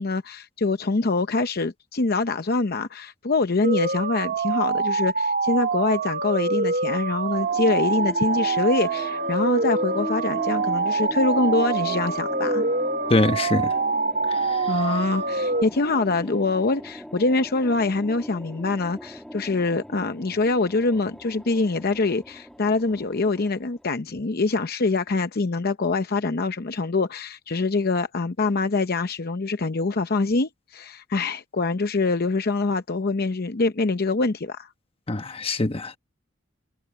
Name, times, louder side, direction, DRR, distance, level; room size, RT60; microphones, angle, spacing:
voice 1, 0.0-12.6 14.7-34.7, left 3 dB, 50° left, 0.7 m, -24 dB
sound 1, 3.6-15.6, right 4 dB, 50° right, 2.5 m, -25 dB
sound 2, 7.3-23.9, equal, ahead, 2.0 m, -39 dB
voice 2, 13.1-13.7 14.3-14.7 35.1-36.0, left 2 dB, 30° left, 1.1 m, -24 dB
head